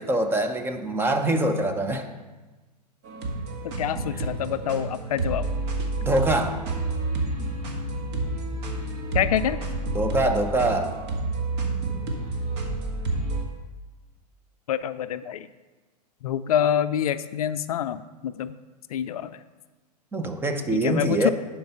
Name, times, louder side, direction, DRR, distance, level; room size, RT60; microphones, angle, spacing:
voice 1, 0.0-2.1 6.0-6.6 9.9-10.9 20.1-21.3, right 1 dB, 10° right, 6 dB, 0.6 m, -24 dB
sound 1, 3.0-13.4, right 2 dB, 45° right, 1.6 m, -29 dB
voice 2, 3.8-5.4 9.1-9.6 14.7-15.5 16.2-18.5 18.9-19.4 20.7-21.3, left 10 dB, 60° left, 13 dB, 0.4 m, -26 dB
10.5 x 4.6 x 5.4 m, 1.2 s
hypercardioid pair, 110°, 21 cm